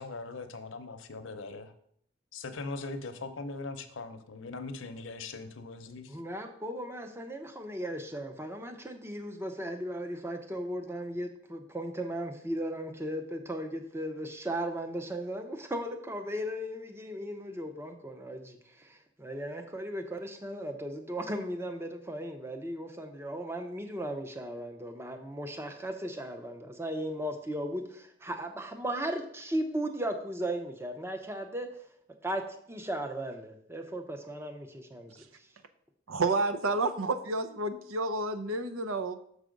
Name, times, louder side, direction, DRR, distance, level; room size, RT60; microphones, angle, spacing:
voice 1, 0.0-1.7 2.3-6.2, left 3 dB, 70° left, 7 dB, 0.7 m, -40 dB
voice 2, 6.1-31.7 32.2-35.2, right 1 dB, 10° right, 6 dB, 0.6 m, -36 dB
voice 3, 36.1-39.2, right 3 dB, 85° right, 9 dB, 0.7 m, -30 dB
6.6 x 4.8 x 5.1 m, 0.68 s
head